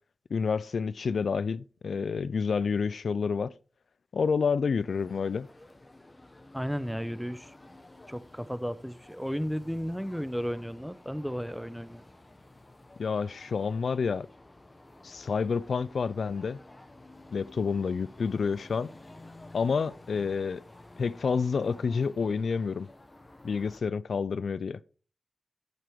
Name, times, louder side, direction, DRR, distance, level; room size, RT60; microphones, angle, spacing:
voice 1, 0.3-3.5 4.1-5.5 13.0-14.3 15.0-16.6 17.3-18.9 19.5-20.6 21.0-22.9 23.4-24.8, left 5 dB, 80° left, 0.3 m, -29 dB
sound 1, 4.8-23.8, left 2 dB, 25° left, 1.1 m, -52 dB
voice 2, 6.5-7.8 8.1-12.0, equal, ahead, 0.7 m, -34 dB
8.4 x 7.6 x 4.6 m
wide cardioid pair, 80°, 0 cm